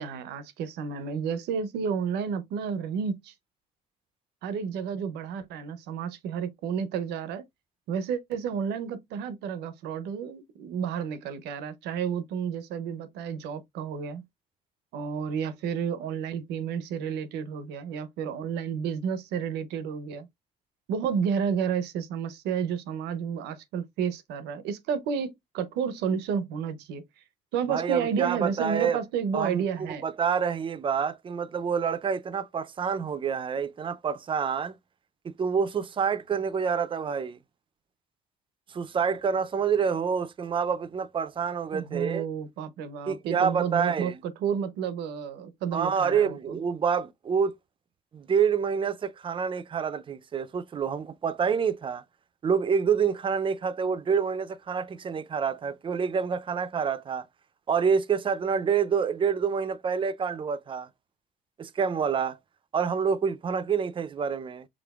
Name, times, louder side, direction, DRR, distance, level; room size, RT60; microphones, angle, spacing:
voice 1, 0.0-3.3 4.4-7.4 7.9-14.2 14.9-20.3 20.9-27.0 27.5-30.1 41.7-46.6, right 7 dB, 90° right, 0.8 m, -31 dB
voice 2, 27.7-29.0 29.3-34.7 35.2-37.4 38.7-42.2 43.1-44.2 45.7-47.5 48.1-52.0 52.4-57.3 57.7-60.9 61.6-62.4 62.7-64.7, right 6 dB, 30° right, 0.5 m, -27 dB
5.0 x 3.7 x 2.3 m
cardioid pair, 110°, 17 cm